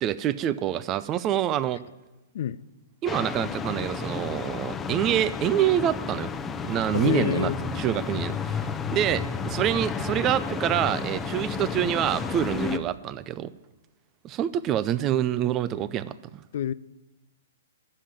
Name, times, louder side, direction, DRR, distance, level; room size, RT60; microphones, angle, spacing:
voice 1, 0.0-1.8 3.0-6.3 6.6-13.5 14.2-16.4, right 11 dB, 25° right, 0.5 m, -26 dB
sound 1, 3.1-12.8, left 5 dB, 15° left, 0.8 m, -32 dB
voice 2, 6.9-7.6 16.5-16.7, left 10 dB, 55° left, 0.4 m, -27 dB
11.5 x 7.7 x 8.8 m
figure-of-eight pair, 120°, 0 cm